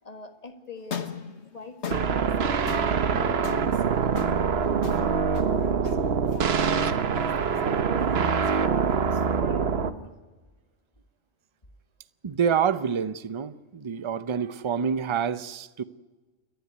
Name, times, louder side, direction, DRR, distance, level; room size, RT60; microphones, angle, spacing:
voice 1, 0.0-2.3 2.7-4.3 4.6-6.0 6.3-10.1, left 2 dB, 30° left, 1.9 m, -43 dB
sound 1, 0.8-9.1, left 7 dB, 65° left, 1.6 m, -40 dB
sound 2, 1.9-9.9, right 6 dB, 60° right, 1.2 m, -24 dB
voice 2, 12.2-15.8, right 7 dB, 30° right, 0.6 m, -27 dB
29.0 x 11.5 x 9.5 m
omnidirectional pair, 1.3 m